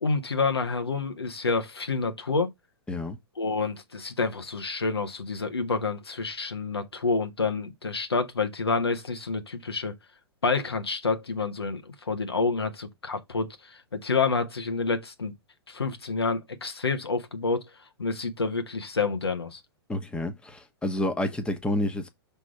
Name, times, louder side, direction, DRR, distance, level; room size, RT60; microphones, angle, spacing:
voice 1, 0.0-2.5 3.4-9.9 10.4-15.3 15.7-17.6 18.0-19.6, left 4 dB, 80° left, 1.2 m, -28 dB
voice 2, 19.9-22.1, left 1 dB, 5° left, 1.1 m, -29 dB
6.1 x 3.5 x 5.7 m
figure-of-eight pair, 105°, 13 cm